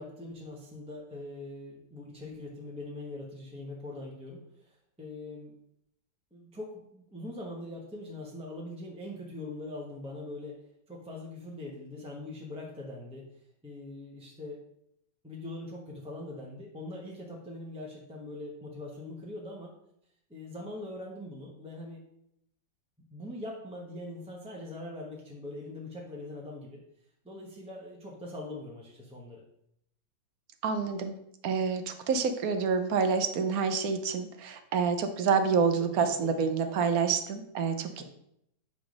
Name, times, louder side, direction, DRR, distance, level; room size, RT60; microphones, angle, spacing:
voice 1, 0.0-5.5 6.3-10.5 10.9-13.3 13.6-14.6 15.2-19.7 20.3-22.0 23.1-26.8 27.2-29.4 35.5-36.5, left 2 dB, 5° right, -3 dB, 0.7 m, -42 dB
voice 2, 30.6-31.2 31.4-38.0, right 5 dB, 65° right, 7 dB, 1.0 m, -28 dB
8.6 x 3.5 x 5.2 m, 0.76 s
omnidirectional pair, 2.0 m